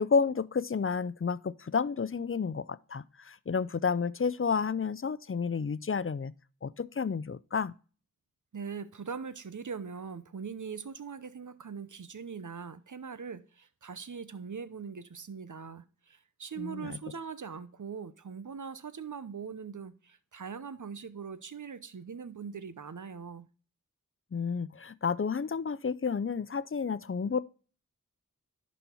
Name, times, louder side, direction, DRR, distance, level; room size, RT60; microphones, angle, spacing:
voice 1, 0.0-6.3 6.6-7.7 16.6-17.0 24.3-27.4, left 5 dB, 40° left, 0.5 m, -31 dB
voice 2, 8.5-23.5, right 6 dB, 65° right, 0.8 m, -41 dB
11.0 x 4.3 x 4.4 m
wide cardioid pair, 50°, 32 cm